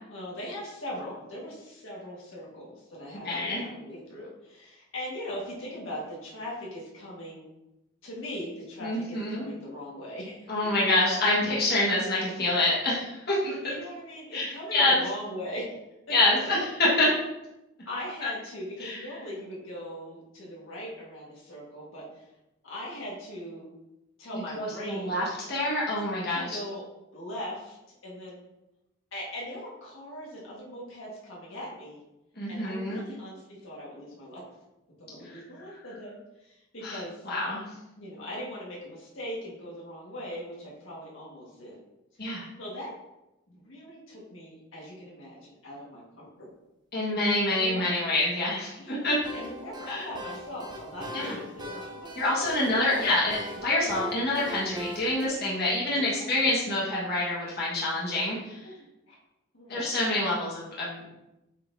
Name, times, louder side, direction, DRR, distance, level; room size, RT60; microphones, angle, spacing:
voice 1, 0.1-7.5 8.0-10.4 13.5-15.7 16.4-16.6 17.9-22.3 22.6-23.7 24.2-25.2 26.3-26.8 27.1-27.8 28.0-28.4 29.1-32.0 32.5-34.4 35.0-37.3 38.0-41.8 42.1-42.9 43.5-46.5 47.1-47.9 48.8-49.1 49.3-53.1 55.3-55.4 55.9-56.6 58.6-58.7 59.1-59.2 59.5-59.9 60.4-60.5, equal, 75° left, -5 dB, 1.8 m, -40 dB
voice 2, 3.2-3.6 8.8-9.5 10.5-13.6 14.3-15.0 16.1-17.1 18.8-19.0 24.3-26.6 32.4-33.0 35.3-35.4 36.8-37.6 42.2-42.5 46.9-49.2 49.9-50.1 51.1-51.3 52.1-53.4 53.6-58.7 59.7-61.2, left 2 dB, 50° left, -6 dB, 1.7 m, -27 dB
sound 1, 49.2-55.3, right 1 dB, 20° right, 0.7 m, -41 dB
8.1 x 4.1 x 2.8 m, 0.94 s
head